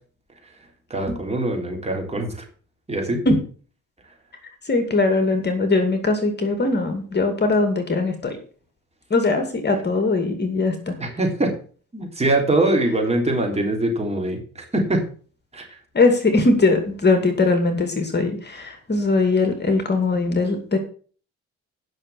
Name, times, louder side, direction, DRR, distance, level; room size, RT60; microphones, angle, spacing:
voice 1, 0.9-2.3 2.9-3.2 11.0-11.5 11.9-15.0 15.5-15.7, right 2 dB, 20° right, 1 dB, 3.6 m, -23 dB
voice 2, 4.6-8.4 9.1-11.0 15.9-20.8, left 3 dB, 35° left, 6 dB, 2.4 m, -20 dB
9.6 x 6.4 x 7.1 m, 0.42 s
cardioid pair, 90°, 30 cm